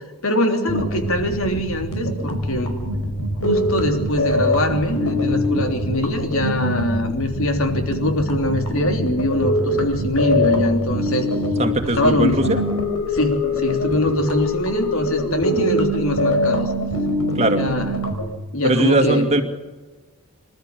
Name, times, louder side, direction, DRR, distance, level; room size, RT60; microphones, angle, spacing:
voice 1, 0.2-2.7 3.4-11.3 12.0-12.5 13.1-16.7 17.5-17.9 18.5-19.3, left 1 dB, 70° left, 5 dB, 3.3 m, -22 dB
sound 1, 0.7-18.3, left 1 dB, 90° left, 5.1 m, -23 dB
voice 2, 11.6-12.6 17.4-17.6 18.6-19.4, right 1 dB, 30° right, 6 dB, 2.2 m, -19 dB
26.5 x 13.0 x 9.1 m, 1.2 s
head